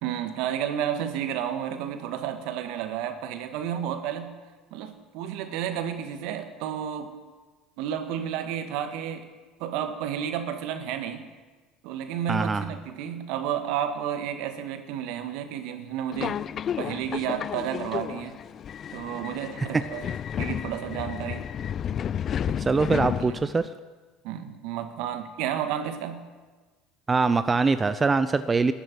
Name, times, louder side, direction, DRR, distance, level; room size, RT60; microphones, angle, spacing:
voice 1, 0.0-4.3 4.7-7.1 7.8-9.2 9.6-11.3 11.8-16.4 16.8-18.4 18.9-21.5 23.2-23.4 24.2-26.2, right 9 dB, 70° right, 8 dB, 1.6 m, -31 dB
voice 2, 12.3-12.7 19.7-19.8 22.6-23.7 27.1-28.7, right 4 dB, 25° right, 12 dB, 0.7 m, -23 dB
Subway metro underground, 16.1-23.7, left 9 dB, 45° left, 0.4 m, -32 dB
12.5 x 11.0 x 9.3 m, 1.3 s
hypercardioid pair, 75°, 0 cm